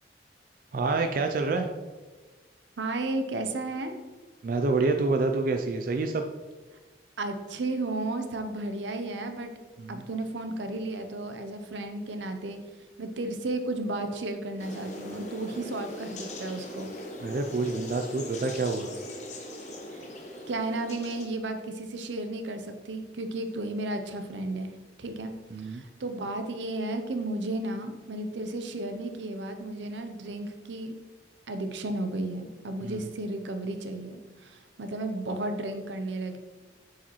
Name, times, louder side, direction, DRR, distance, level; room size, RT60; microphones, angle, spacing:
voice 1, 0.7-1.7 4.4-6.2 9.8-10.0 17.2-18.9 25.5-25.8 32.8-33.0, right 3 dB, 50° right, 5 dB, 0.3 m, -27 dB
voice 2, 2.8-3.9 7.2-9.5 9.9-12.6 13.0-16.9 19.9-20.1 20.5-24.7 25.0-25.3 25.6-30.9 31.5-36.4, right 2 dB, 85° right, 7 dB, 0.6 m, -33 dB
sound 1, 14.6-21.3, left 1 dB, 40° left, 0.8 m, -40 dB
7.1 x 4.8 x 3.0 m, 1.3 s
head